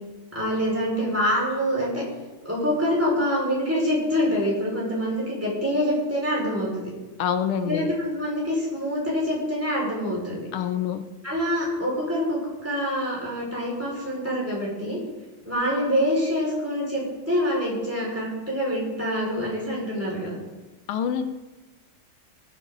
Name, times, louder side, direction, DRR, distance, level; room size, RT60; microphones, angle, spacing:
voice 1, 0.3-2.0 2.4-6.9 7.6-10.5 11.2-15.0 15.4-20.4, equal, 5° right, -5 dB, 5.3 m, -26 dB
voice 2, 7.2-7.9 10.5-11.0 20.9-21.2, left 8 dB, 90° left, 9 dB, 1.7 m, -26 dB
19.5 x 9.6 x 4.0 m, 1.2 s
omnidirectional pair, 2.3 m